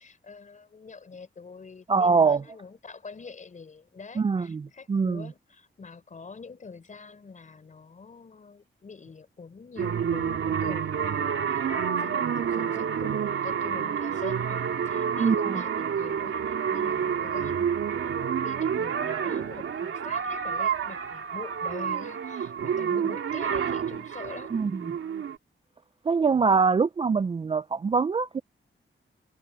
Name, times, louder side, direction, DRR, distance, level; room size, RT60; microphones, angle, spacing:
voice 1, 0.0-11.7 12.0-24.5, left 4 dB, 35° left, 4.3 m, -45 dB
voice 2, 1.9-2.4 4.2-4.6 4.9-5.3 15.2-15.6 24.5-24.8 26.1-28.4, right 5 dB, 25° right, 0.3 m, -23 dB
sound 1, 9.8-25.4, right 7 dB, 80° right, 2.4 m, -29 dB
wide cardioid pair, 175°, 21 cm